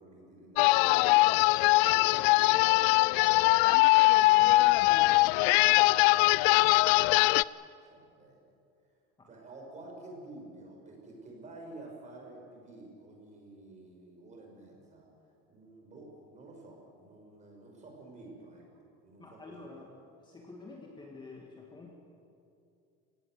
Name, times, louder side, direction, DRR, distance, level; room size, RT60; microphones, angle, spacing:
voice 1, 0.0-4.8 5.2-6.6 7.3-7.4 7.8-8.5 9.3-15.1 15.5-18.6 19.0-19.4, right 2 dB, 25° right, 0 dB, 6.2 m, -51 dB
sound 1, 0.6-7.4, left 21 dB, 80° left, 0.5 m, -22 dB
voice 2, 19.2-19.9 20.2-21.9, left 3 dB, 15° left, 0 dB, 2.2 m, -49 dB
28.0 x 17.5 x 7.9 m, 2.5 s
cardioid pair, 155°, 30 cm